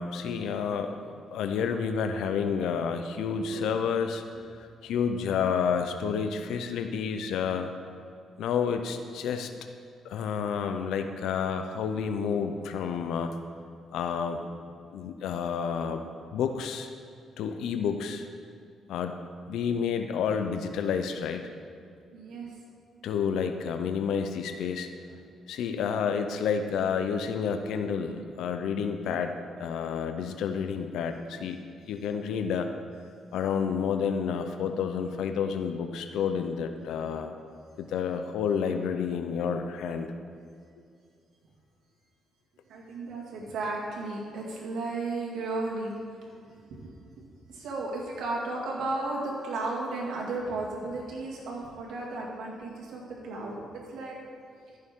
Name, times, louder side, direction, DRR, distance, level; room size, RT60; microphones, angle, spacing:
voice 1, 0.0-4.2 4.8-7.7 8.4-9.5 10.0-13.4 13.9-14.4 14.9-16.1 16.3-16.9 17.4-18.3 18.9-19.2 19.5-21.5 23.0-24.9 25.5-31.6 31.9-32.7 33.3-37.3 37.8-40.1, left 6 dB, 80° left, 7 dB, 0.6 m, -30 dB
voice 2, 22.1-22.5 42.7-45.9 46.7-47.0 47.5-54.2, right 2 dB, 80° right, -3 dB, 2.1 m, -34 dB
14.5 x 6.7 x 3.7 m, 2.3 s
cardioid pair, 90°, 0 cm